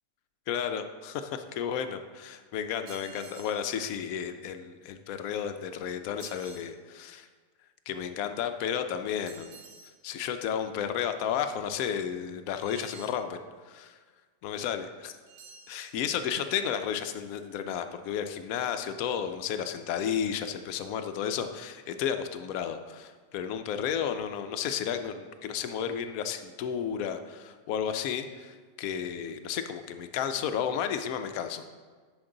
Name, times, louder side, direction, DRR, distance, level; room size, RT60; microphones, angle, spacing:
voice 1, 0.5-7.3 7.9-9.6 10.0-14.0 14.4-15.1 15.7-31.6, left 8 dB, 70° left, 8 dB, 0.8 m, -32 dB
sound 1, 2.9-3.7 6.2-6.7 9.3-10.0 12.6-13.2 15.3-16.0, right 5 dB, 60° right, 1.2 m, -50 dB
10.5 x 5.3 x 3.8 m, 1.5 s
omnidirectional pair, 2.0 m